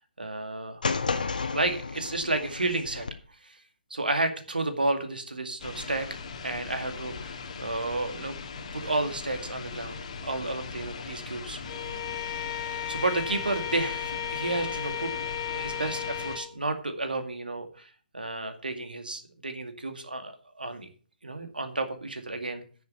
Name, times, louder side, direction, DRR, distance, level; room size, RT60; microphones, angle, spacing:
voice 1, 0.2-0.8 1.5-3.1 3.4-3.6 3.9-6.1 6.4-8.4 8.7-11.6 12.9-20.9 21.2-22.6, right 2 dB, 70° right, 8 dB, 2.2 m, -31 dB
sound 1, 0.8-3.1, left 4 dB, 60° left, 1.6 m, -32 dB
sound 2, 5.6-16.4, left 5 dB, 45° left, 1.8 m, -40 dB
Bowed string instrument, 11.7-16.5, left 10 dB, 20° left, 1.7 m, -34 dB
10.0 x 7.0 x 7.3 m, 0.41 s
figure-of-eight pair, 135°, 5 cm